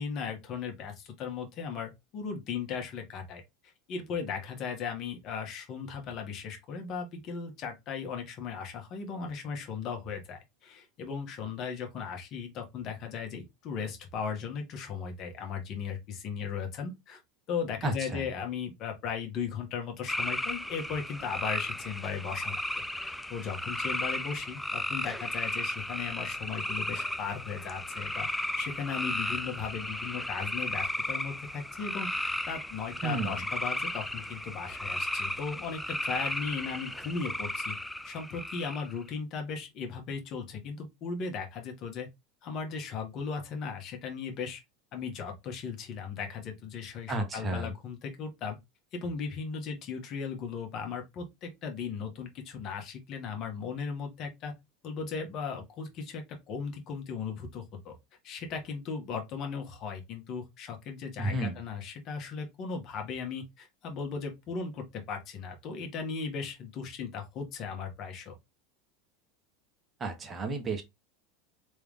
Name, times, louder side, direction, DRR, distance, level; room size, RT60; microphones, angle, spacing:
voice 1, 0.0-3.4 3.9-17.2 17.5-37.8 38.0-42.1 42.4-44.6 44.9-48.6 48.9-54.5 54.8-57.9 58.2-68.3, left 6 dB, 50° left, 1.5 m, -37 dB
voice 2, 17.8-18.3 33.0-33.4 47.1-47.7 61.2-61.6 70.0-70.8, right 2 dB, 25° right, 1.1 m, -32 dB
sound 1, 20.1-39.0, left 1 dB, 5° left, 0.4 m, -35 dB
3.4 x 3.2 x 3.6 m
hypercardioid pair, 95°, 0 cm